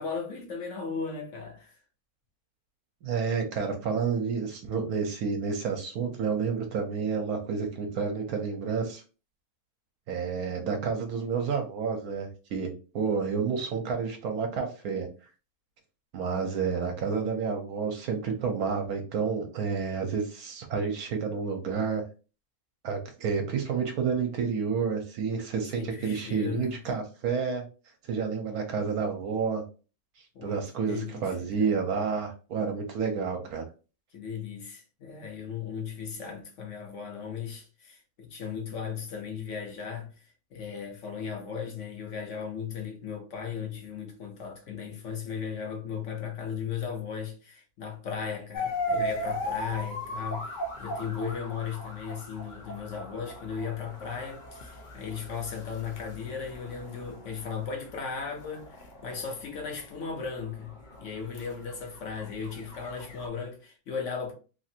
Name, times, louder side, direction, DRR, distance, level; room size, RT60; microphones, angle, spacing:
voice 1, 0.0-1.8 25.7-26.8 30.3-31.7 34.1-40.2 40.5-64.3, left 6 dB, 60° left, 0.9 m, -36 dB
voice 2, 3.0-9.0 10.1-15.1 16.1-22.0 22.8-27.6 28.0-29.6 30.4-33.6, right 5 dB, 75° right, 1.1 m, -30 dB
sound 1, 48.5-63.3, left 1 dB, 85° left, 0.4 m, -38 dB
3.0 x 2.4 x 2.6 m
omnidirectional pair, 1.6 m